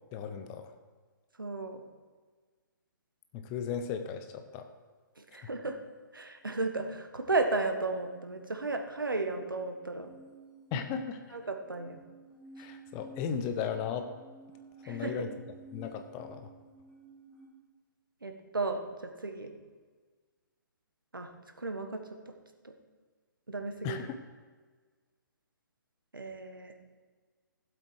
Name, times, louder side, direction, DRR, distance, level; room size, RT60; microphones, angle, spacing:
voice 1, 0.1-0.7 3.3-4.6 10.7-11.2 12.6-14.1 14.9-15.3 15.7-16.5 23.8-24.2, left 7 dB, 25° left, 8 dB, 0.9 m, -36 dB
voice 2, 1.4-1.8 5.3-5.8 6.1-10.1 11.3-12.0 14.8-15.1 18.2-18.8 19.2-19.5 21.1-21.3 21.6-22.0 23.5-24.0 26.1-26.7, right 3 dB, 80° right, 5 dB, 1.5 m, -33 dB
sound 1, 7.8-17.5, right 2 dB, 5° right, 2.8 m, -53 dB
15.0 x 8.0 x 4.8 m, 1.5 s
figure-of-eight pair, 130°, 11 cm